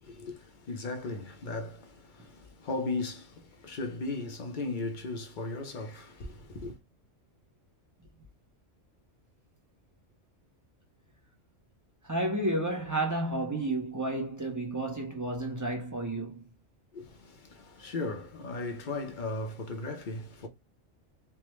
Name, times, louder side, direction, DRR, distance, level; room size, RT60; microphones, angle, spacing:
voice 1, 0.0-6.8 16.9-20.5, left 3 dB, 50° left, 0.7 m, -37 dB
voice 2, 12.0-16.4, right 1 dB, 20° right, 0.5 m, -31 dB
3.4 x 2.1 x 3.0 m
omnidirectional pair, 1.3 m